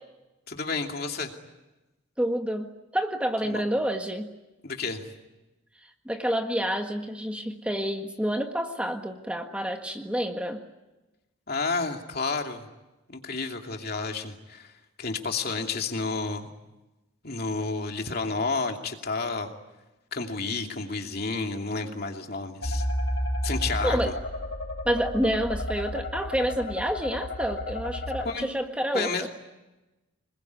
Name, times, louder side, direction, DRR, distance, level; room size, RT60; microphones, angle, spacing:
voice 1, 0.5-1.3 3.4-3.6 4.6-5.1 11.5-12.6 13.1-16.5 17.2-19.5 20.1-22.9 23.4-24.1 28.2-28.5 28.9-29.3, left 4 dB, 50° left, 3 dB, 2.7 m, -31 dB
voice 2, 2.2-4.3 6.0-10.6 23.8-24.1 24.8-29.3, equal, 5° right, 4 dB, 1.6 m, -28 dB
sound 1, 22.6-28.2, left 1 dB, 70° left, 5.4 m, -31 dB
26.5 x 21.0 x 9.6 m, 1.1 s
head